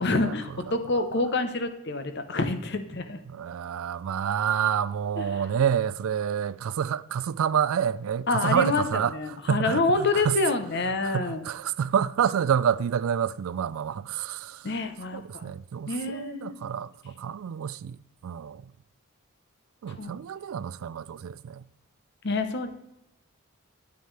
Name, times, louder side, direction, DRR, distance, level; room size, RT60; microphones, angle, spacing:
voice 1, 0.0-3.2 5.2-5.4 8.3-11.5 14.6-15.5 15.9-16.6 19.9-20.2 22.2-22.7, left 3 dB, 50° left, 0.8 m, -27 dB
voice 2, 3.3-9.1 9.5-10.4 11.0-14.6 15.1-18.0 18.2-18.6 19.8-21.6, right 8 dB, 70° right, 0.3 m, -28 dB
9.3 x 9.3 x 3.3 m
head